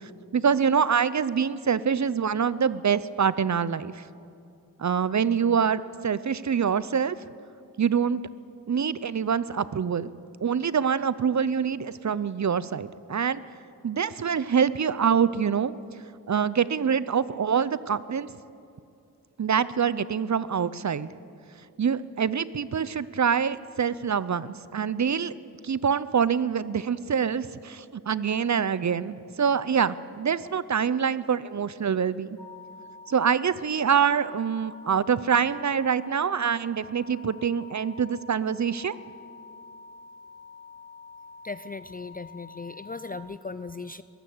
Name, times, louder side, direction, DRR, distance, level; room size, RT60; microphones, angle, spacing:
voice 1, 0.3-4.0 4.8-7.2 7.8-8.2 8.7-10.1 10.4-13.4 13.8-15.7 16.3-18.3 19.4-21.1 21.8-25.3 25.6-32.4 33.1-38.9, right 7 dB, 45° right, 16 dB, 0.7 m, -25 dB
sound 1, 32.4-43.2, left 4 dB, 10° left, 4.5 m, -47 dB
voice 2, 41.4-44.0, left 4 dB, 25° left, 13 dB, 0.4 m, -37 dB
22.0 x 15.0 x 7.9 m, 2.5 s
wide cardioid pair, 75°, 38 cm